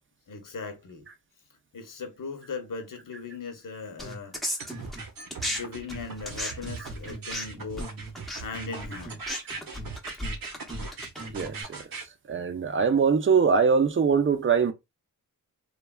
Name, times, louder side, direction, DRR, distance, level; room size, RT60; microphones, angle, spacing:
voice 1, 0.3-1.1 1.7-4.4 5.4-7.9 8.4-9.2, left 4 dB, 65° left, 0.8 m, -38 dB
sound 1, 4.0-5.6 5.9-11.6, equal, ahead, 0.7 m, -35 dB
sound 2, 4.6-12.1, right 4 dB, 75° right, 0.8 m, -40 dB
voice 2, 11.3-11.8 12.3-14.7, right 6 dB, 35° right, 0.5 m, -22 dB
3.2 x 2.2 x 2.2 m
wide cardioid pair, 80°, 35 cm